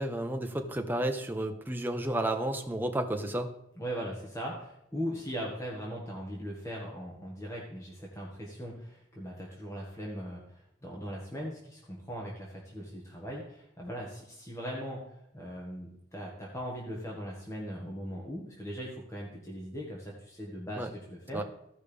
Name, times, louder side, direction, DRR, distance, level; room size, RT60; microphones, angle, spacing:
voice 1, 0.0-3.5 20.8-20.9 21.3-21.4, right 1 dB, 10° right, 4 dB, 0.9 m, -32 dB
voice 2, 3.8-15.0 15.3-21.4, equal, 15° left, -3 dB, 1.5 m, -39 dB
16.0 x 5.4 x 3.4 m, 0.79 s
head